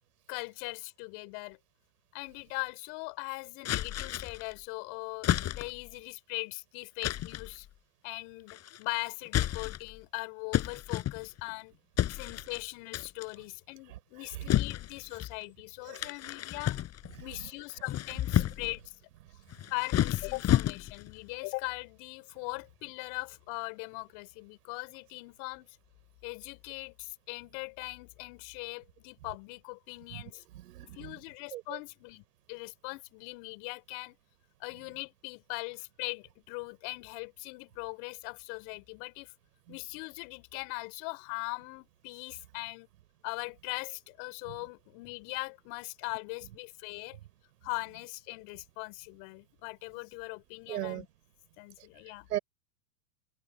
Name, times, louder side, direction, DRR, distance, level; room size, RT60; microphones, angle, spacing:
voice 1, 0.3-1.6 2.1-7.7 8.0-11.8 12.1-16.8 17.2-18.9 19.7-25.8 26.2-30.4 30.9-34.2 34.6-39.3 39.7-42.9 43.2-47.2 47.6-51.1 51.6-52.3, left 32 dB, 50° left, 4.7 m, -40 dB
sound 1, 3.6-4.5 5.2-5.9 7.0-7.5 8.5-8.9 9.3-10.0 10.5-11.5 12.0-12.6 12.9-13.4 14.5-15.3 15.9-17.2 17.7-18.8 19.5-21.1, left 12 dB, 30° left, 5.9 m, -31 dB
voice 2, 30.5-31.1 31.5-31.8 50.7-51.0 52.3-52.4, right 14 dB, 75° right, 4.8 m, -37 dB
open air
hypercardioid pair, 125°, 47 cm